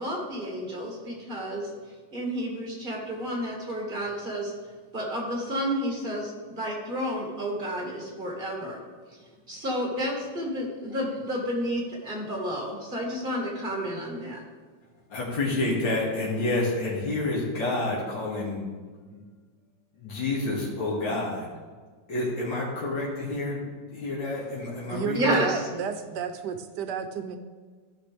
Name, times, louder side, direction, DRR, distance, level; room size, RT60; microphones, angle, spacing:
voice 1, 0.0-1.7 2.1-4.5 4.9-8.8 9.5-14.4 25.1-25.6, equal, 25° right, -2 dB, 2.1 m, -30 dB
voice 2, 15.1-18.6 19.1-19.2 19.9-21.5 22.1-23.6 23.9-25.4, left 2 dB, 80° left, -6 dB, 2.8 m, -29 dB
voice 3, 24.9-27.4, right 7 dB, 70° right, 8 dB, 1.2 m, -32 dB
14.0 x 5.9 x 3.4 m, 1.5 s
omnidirectional pair, 2.0 m